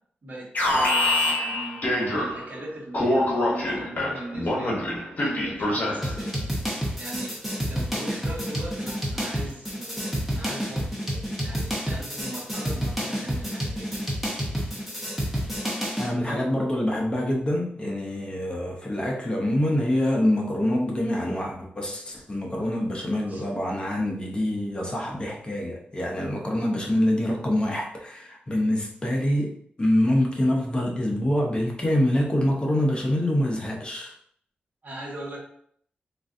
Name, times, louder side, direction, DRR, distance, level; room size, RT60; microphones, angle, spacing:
voice 1, 0.2-4.8 5.2-6.4 7.0-7.4 7.7-10.0 10.3-13.9 16.1-16.5 23.3-23.5 34.8-35.4, right 1 dB, 55° right, -2 dB, 1.1 m, -39 dB
Alarm, 0.5-2.6 2.9-6.2, left 1 dB, 50° left, 1.0 m, -25 dB
sound 1, 6.0-16.1, equal, ahead, 1.0 m, -29 dB
voice 2, 16.0-34.1, left 1 dB, 25° left, 0 dB, 0.7 m, -25 dB
3.7 x 2.5 x 2.6 m, 0.63 s
cardioid pair, 80°, 4 cm